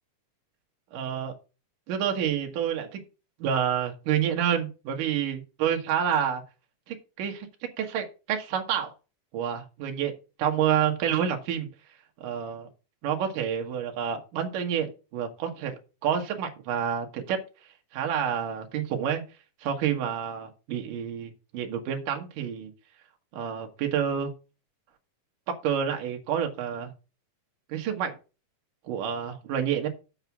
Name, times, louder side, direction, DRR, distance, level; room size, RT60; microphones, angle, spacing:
voice 1, 0.9-1.3 1.9-3.0 3.4-6.4 6.9-7.5 7.8-8.9 9.3-10.1 10.4-11.7 12.2-12.7 13.0-17.4 17.9-19.2 19.6-22.7 23.3-24.3 25.6-26.9 27.7-28.2 28.8-29.9, right 8 dB, 75° right, 3 dB, 3.0 m, -28 dB
7.8 x 7.1 x 6.0 m, 0.32 s
omnidirectional pair, 3.8 m